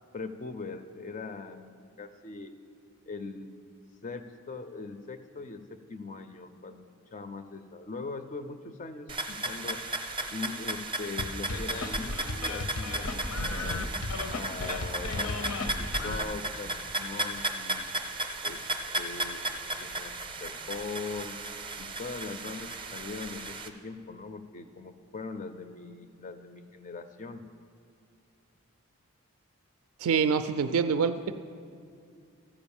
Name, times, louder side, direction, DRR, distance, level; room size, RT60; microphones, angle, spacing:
voice 1, 0.1-2.5 3.1-3.6 4.0-6.8 7.1-9.8 10.3-13.8 14.3-16.7 17.0-17.9 18.4-18.6 19.0-21.4 21.8-27.4, left 3 dB, 35° left, 9 dB, 0.4 m, -41 dB
sound 1, 9.1-23.7, right 1 dB, 20° right, 0.5 m, -35 dB
sound 2, 11.2-16.2, left 2 dB, 80° left, 0.7 m, -34 dB
voice 2, 30.0-31.3, right 6 dB, 75° right, 10 dB, 0.3 m, -26 dB
14.0 x 5.0 x 7.1 m, 2.4 s
head